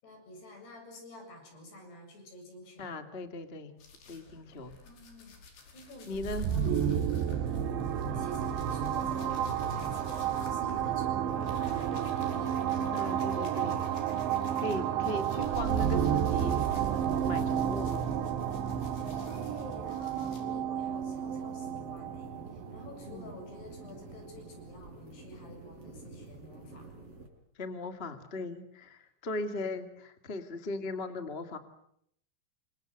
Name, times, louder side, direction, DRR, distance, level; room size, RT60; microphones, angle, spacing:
voice 1, 0.0-2.9 4.8-7.0 7.4-12.8 14.7-16.3 18.2-18.4 19.1-27.0, left 1 dB, 65° left, 4 dB, 9.5 m, -49 dB
voice 2, 2.8-3.7 4.1-4.7 6.1-6.5 12.9-13.8 14.6-16.7 17.2-18.1 23.0-23.4 27.5-31.6, left 2 dB, 30° left, 7 dB, 1.0 m, -38 dB
sound 1, 3.8-14.7 15.0-20.4, left 4 dB, 80° left, 7.3 m, -54 dB
sound 2, 6.1-23.8, right 9 dB, 80° right, 3.9 m, -31 dB
sound 3, 20.9-27.3, right 3 dB, 30° right, 6.4 m, -49 dB
28.5 x 25.5 x 8.0 m, 0.73 s
omnidirectional pair, 5.2 m